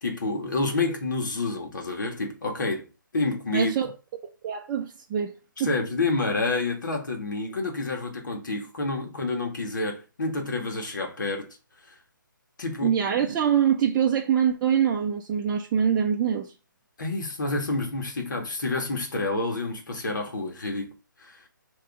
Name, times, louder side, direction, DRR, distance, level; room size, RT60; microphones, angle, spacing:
voice 1, 0.0-2.9 3.1-3.7 5.6-11.5 12.6-12.9 17.0-20.9 21.2-21.4, left 3 dB, 65° left, 1.9 m, -28 dB
voice 2, 3.5-3.9 4.2-5.3 5.6-5.7 12.8-16.5, right 8 dB, 20° right, 0.6 m, -24 dB
6.7 x 3.2 x 4.8 m
figure-of-eight pair, 150°, 11 cm